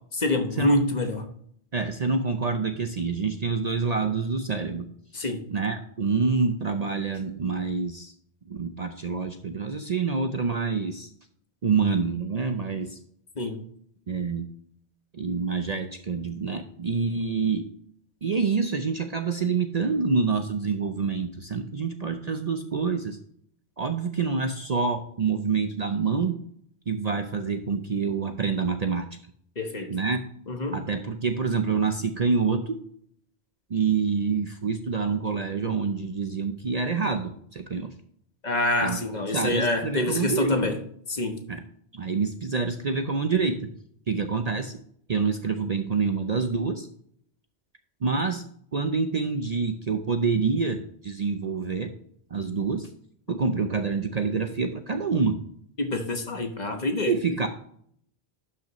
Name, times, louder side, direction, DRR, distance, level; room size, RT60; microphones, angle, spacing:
voice 1, 0.1-1.3 5.1-5.4 13.4-13.6 29.6-29.9 30.5-30.8 38.4-40.8 41.1-41.4 55.8-57.1, left 2 dB, 40° left, 1.2 m, -26 dB
voice 2, 1.7-4.9 5.5-8.1 8.5-11.1 11.6-13.0 14.1-14.5 15.1-17.6 18.2-23.2 23.8-26.4 26.9-29.1 29.9-30.2 30.7-32.8 33.7-37.9 38.8-39.0 39.3-40.6 41.5-41.6 41.9-43.6 44.1-44.7 45.1-46.9 48.0-48.4 48.7-51.9 52.3-52.9 53.3-55.4 57.1-57.5, right 5 dB, 45° right, 0.6 m, -27 dB
12.0 x 5.6 x 3.0 m
omnidirectional pair, 1.1 m